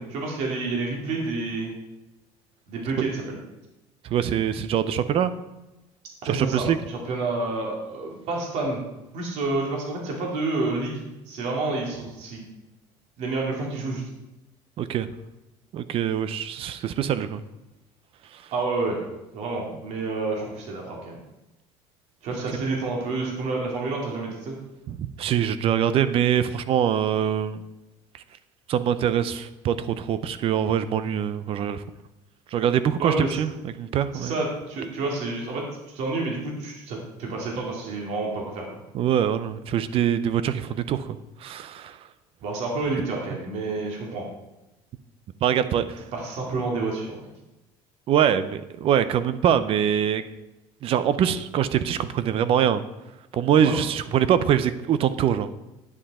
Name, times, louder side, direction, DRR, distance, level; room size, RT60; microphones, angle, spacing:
voice 1, 0.0-1.7 2.7-3.4 6.2-8.8 9.1-12.4 13.2-14.0 18.5-19.0 19.3-21.2 22.2-24.5 33.0-33.4 34.1-35.6 35.9-38.7 42.4-44.2 46.1-47.2 53.6-53.8, right 3 dB, 65° right, -1 dB, 2.8 m, -29 dB
voice 2, 4.0-5.3 6.2-6.8 14.8-15.1 15.7-17.4 18.3-18.4 24.9-27.6 28.1-28.2 28.7-31.8 32.5-33.5 33.8-34.3 38.9-42.0 45.4-46.0 48.1-50.2 50.8-52.8 53.3-55.5, right 9 dB, 50° right, 13 dB, 0.7 m, -23 dB
9.8 x 7.8 x 4.3 m, 0.98 s
cardioid pair, 115°, 12 cm